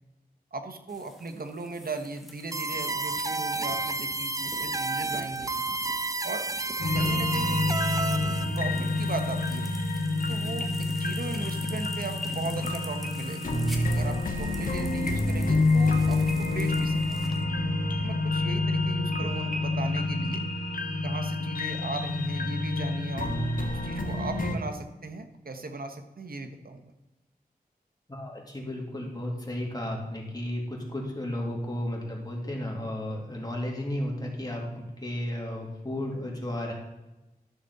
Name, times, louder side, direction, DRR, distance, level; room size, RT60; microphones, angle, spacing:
voice 1, 0.5-5.5 6.2-6.5 6.9-7.8 8.5-9.7 10.3-13.5 13.9-17.4 18.0-20.4 21.0-23.3 23.7-26.9, right 3 dB, 70° right, 7 dB, 1.1 m, -37 dB
sound 1, 0.9-17.4, equal, ahead, 1.6 m, -46 dB
sound 2, 2.5-8.5, right 3 dB, 20° right, 0.4 m, -31 dB
sound 3, 6.8-24.6, left 2 dB, 60° left, 1.3 m, -28 dB
voice 2, 28.1-36.7, left 1 dB, 25° left, -2 dB, 2.7 m, -33 dB
12.0 x 6.7 x 4.1 m, 1.0 s
wide cardioid pair, 65°, 16 cm